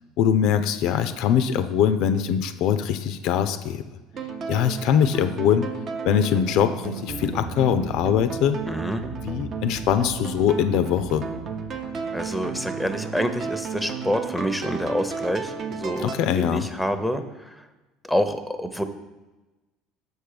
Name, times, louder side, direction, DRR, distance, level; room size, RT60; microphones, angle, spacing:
voice 1, 0.2-3.8 4.5-5.7 6.0-8.6 9.2-11.3 16.0-16.7, left 9 dB, 60° left, 10 dB, 0.4 m, -22 dB
sound 1, 4.1-16.2, right 5 dB, 45° right, 0.7 m, -33 dB
voice 2, 8.7-9.0 12.1-17.6 18.1-18.8, equal, ahead, 9 dB, 0.7 m, -27 dB
6.4 x 4.4 x 5.0 m, 1.1 s
figure-of-eight pair, 65°, 0 cm